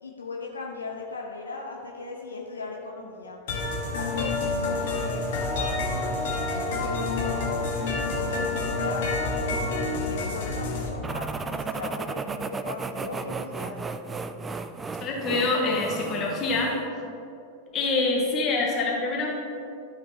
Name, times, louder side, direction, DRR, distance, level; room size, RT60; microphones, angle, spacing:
voice 1, 0.0-3.4 3.9-5.3 5.5-6.1 6.8-7.5 8.1-9.1 9.4-13.8, left 3 dB, 75° left, 0 dB, 0.6 m, -38 dB
sound 1, 3.5-10.9, left 3 dB, 55° left, 1.4 m, -28 dB
sound 2, 11.0-16.8, right 4 dB, 15° right, 0.3 m, -34 dB
voice 2, 15.0-16.7 17.7-19.3, left 3 dB, 30° left, -2 dB, 1.6 m, -25 dB
12.0 x 5.2 x 2.9 m, 2.7 s
figure-of-eight pair, 90°, 0 cm